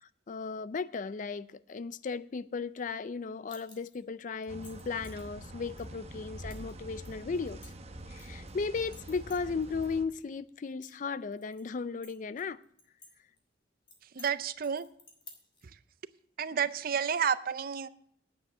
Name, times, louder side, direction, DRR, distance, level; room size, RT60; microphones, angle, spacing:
voice 1, 0.0-7.7 8.1-12.6, left 4 dB, 45° left, 0.4 m, -36 dB
sound 1, 3.5-4.0 4.4-5.2 5.8-5.9 6.5-6.7 7.0-8.5 8.9-9.9 10.2-10.3 10.7-11.6 12.0-13.1 13.4-13.5 13.9-14.3 14.6-15.6, left 4 dB, 25° left, 2.1 m, -54 dB
sound 2, 4.5-10.0, right 1 dB, 35° right, 0.9 m, -45 dB
voice 2, 14.1-14.9 16.4-17.9, right 7 dB, 50° right, 0.5 m, -30 dB
9.2 x 7.8 x 7.0 m
head